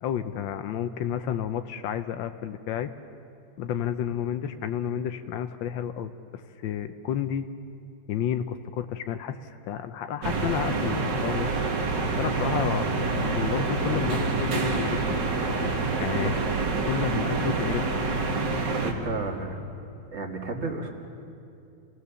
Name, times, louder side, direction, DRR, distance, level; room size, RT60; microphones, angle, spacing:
voice 1, 0.0-2.9 3.6-7.5 8.1-11.5 12.2-15.2 16.0-16.3 16.9-18.1, left 9 dB, 85° left, 9 dB, 1.5 m, -31 dB
sound 1, 10.2-18.9, right 3 dB, 70° right, 2.3 m, -27 dB
voice 2, 18.7-19.6 20.1-20.9, right 3 dB, 35° right, 3 dB, 2.1 m, -32 dB
28.5 x 18.0 x 6.9 m, 2.6 s
omnidirectional pair, 2.1 m